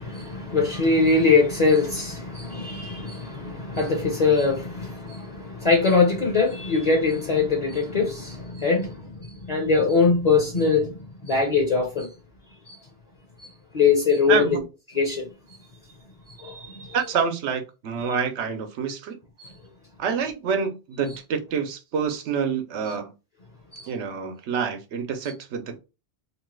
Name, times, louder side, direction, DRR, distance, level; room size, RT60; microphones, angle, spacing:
voice 1, 0.0-12.1 12.7-12.8 13.7-14.6 14.9-15.3 16.4-17.0 19.4-19.5 23.7-23.9, left 4 dB, 40° left, 0.7 m, -22 dB
voice 2, 14.3-14.6 16.9-19.2 20.0-23.1 23.9-25.8, right 6 dB, 85° right, 1.0 m, -27 dB
2.9 x 2.2 x 3.1 m
omnidirectional pair, 1.1 m